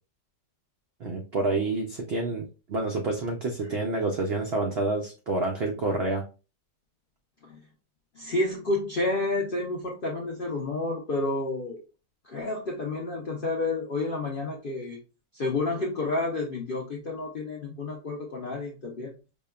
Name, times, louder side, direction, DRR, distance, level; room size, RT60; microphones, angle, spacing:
voice 1, 1.0-6.2, right 2 dB, 85° right, 3 dB, 0.5 m, -28 dB
voice 2, 8.2-11.8 12.2-15.0 15.3-19.1, left 2 dB, 65° left, -2 dB, 0.5 m, -30 dB
5.2 x 2.2 x 2.2 m, 0.33 s
omnidirectional pair, 1.7 m